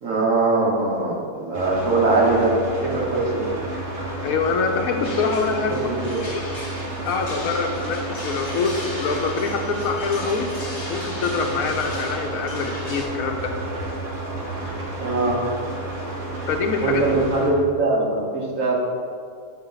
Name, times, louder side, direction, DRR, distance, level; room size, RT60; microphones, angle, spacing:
voice 1, 0.0-2.6 2.8-3.5 5.7-6.2 15.0-15.4 16.8-18.7, right 3 dB, 55° right, -3 dB, 1.5 m, -21 dB
sound 1, 1.5-17.5, right 2 dB, 35° right, 1.2 m, -31 dB
voice 2, 4.2-5.9 6.3-6.4 7.0-10.5 10.9-13.5 16.5-17.0, left 4 dB, 65° left, 4 dB, 1.0 m, -25 dB
sound 2, 5.0-13.0, left 1 dB, 25° left, 1.3 m, -37 dB
6.5 x 5.6 x 3.9 m, 2.1 s
omnidirectional pair, 1.7 m